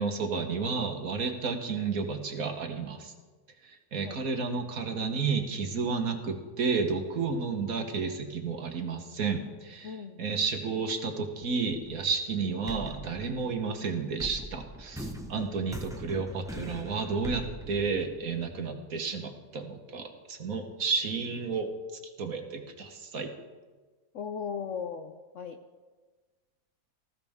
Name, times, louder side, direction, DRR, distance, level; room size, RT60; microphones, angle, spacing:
voice 1, 0.0-3.1 3.6-21.7 22.2-23.3, right 4 dB, 55° right, 4 dB, 1.6 m, -31 dB
voice 2, 9.8-10.2 15.3-15.5 24.1-25.6, left 6 dB, 60° left, 7 dB, 0.8 m, -37 dB
sound 1, 11.7-12.3 12.7-18.5, right 1 dB, 5° right, 0.8 m, -41 dB
19.5 x 15.0 x 3.6 m, 1.4 s
omnidirectional pair, 1.8 m